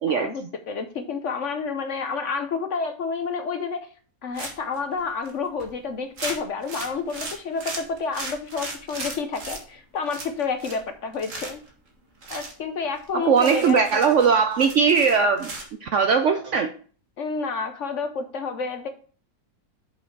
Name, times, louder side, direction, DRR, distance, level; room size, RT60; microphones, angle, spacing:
voice 1, 0.1-3.9 4.2-11.6 12.3-14.0 17.2-18.9, left 5 dB, 55° left, 7 dB, 0.9 m, -30 dB
sound 1, 4.3-4.8 5.3-5.4 5.6-5.7 6.2-9.6 10.1-10.9 11.1-11.7 12.2-12.5 13.0-13.1 13.3-15.7, right 2 dB, 50° right, 2.0 m, -36 dB
voice 2, 13.1-15.5 15.8-16.7, right 6 dB, 65° right, 7 dB, 0.7 m, -20 dB
7.2 x 5.7 x 4.4 m, 0.42 s
omnidirectional pair, 1.8 m